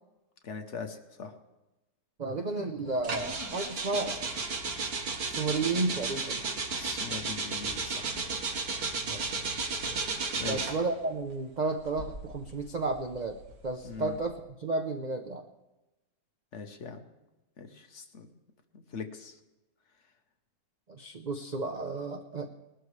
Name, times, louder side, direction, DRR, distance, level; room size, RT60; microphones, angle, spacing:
voice 1, 0.4-1.3 6.7-8.1 10.3-10.7 13.8-14.2 16.5-17.0 17.6-18.3 18.7-19.4, left 5 dB, 50° left, 6 dB, 1.2 m, -41 dB
voice 2, 2.2-4.2 5.2-6.4 9.0-9.3 10.0-10.1 10.5-13.4 13.6-15.4 20.9-22.5, right 3 dB, 50° right, 5 dB, 0.5 m, -32 dB
sound 1, 3.0-10.9 11.8-14.3, right 4 dB, 70° right, 1.8 m, -34 dB
20.0 x 12.5 x 3.2 m, 1.0 s
omnidirectional pair, 1.7 m